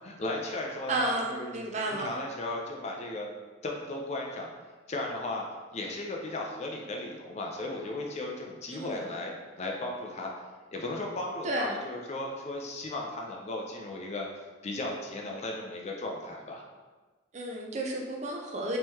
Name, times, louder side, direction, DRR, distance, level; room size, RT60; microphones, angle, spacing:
voice 1, 0.0-3.3 3.6-4.5 4.9-5.4 5.7-9.3 9.6-10.3 10.7-14.3 14.6-16.6, left 2 dB, 35° left, 0 dB, 0.4 m, -36 dB
voice 2, 0.9-2.1 8.7-9.1 11.4-11.8 17.3-18.8, right 2 dB, 35° right, -1 dB, 0.4 m, -32 dB
3.7 x 3.0 x 2.7 m, 1.3 s
head